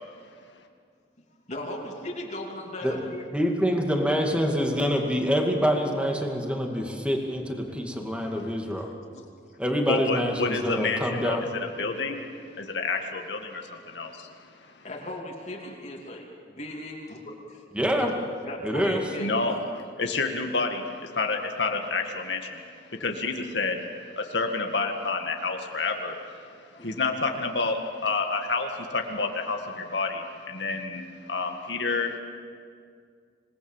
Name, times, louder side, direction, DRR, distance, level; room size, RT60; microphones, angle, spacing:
voice 1, 1.5-3.2 8.8-9.3 14.6-17.6 18.0-18.1 18.4-19.3 26.7-26.9, left 1 dB, 40° left, -1 dB, 2.9 m, -37 dB
voice 2, 3.3-8.9 9.6-11.5 17.7-18.1 18.6-19.0, equal, 5° right, 2 dB, 2.3 m, -26 dB
voice 3, 9.9-11.4 11.8-14.3 19.2-22.6 23.0-23.8 24.1-32.2, left 3 dB, 75° left, 3 dB, 1.9 m, -29 dB
27.0 x 19.5 x 7.3 m, 2.2 s
head